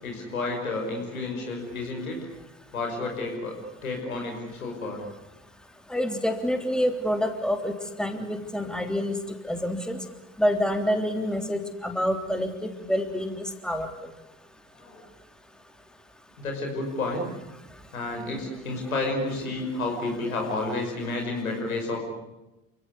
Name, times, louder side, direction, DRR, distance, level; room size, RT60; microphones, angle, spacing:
voice 1, 0.0-2.2 2.7-3.6 3.8-5.1 14.7-15.0 16.4-17.3 17.9-22.0, left 2 dB, 85° left, 1 dB, 5.8 m, -31 dB
voice 2, 5.9-9.2 9.5-10.0 10.4-13.9, equal, ahead, 6 dB, 3.4 m, -27 dB
28.5 x 17.0 x 9.9 m, 1.0 s
figure-of-eight pair, 55°, 41 cm